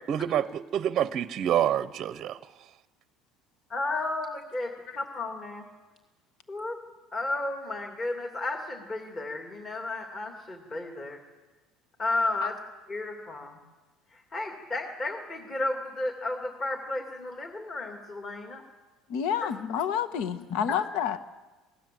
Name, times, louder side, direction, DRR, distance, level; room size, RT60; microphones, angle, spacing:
voice 1, 0.1-2.4, right 10 dB, 35° right, 14 dB, 0.7 m, -27 dB
voice 2, 3.7-5.6 6.5-6.8 7.1-11.2 12.0-12.5 12.9-13.6 14.3-18.6 19.4-19.5, left 2 dB, 25° left, 3 dB, 2.6 m, -33 dB
voice 3, 19.1-21.2, left 8 dB, 65° left, 10 dB, 1.3 m, -29 dB
27.0 x 19.5 x 7.7 m, 1.2 s
cardioid pair, 155°, 0 cm